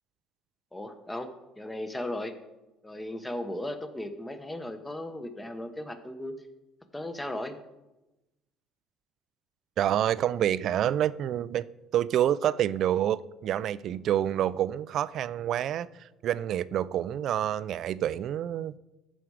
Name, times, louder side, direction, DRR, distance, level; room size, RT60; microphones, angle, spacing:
voice 1, 0.7-1.3 1.6-2.3 2.8-6.3 6.9-7.6, left 1 dB, 10° left, 0.9 m, -36 dB
voice 2, 9.8-11.7 11.9-18.8, right 11 dB, 55° right, 0.3 m, -28 dB
13.5 x 5.1 x 4.8 m
cardioid pair, 120°, 0 cm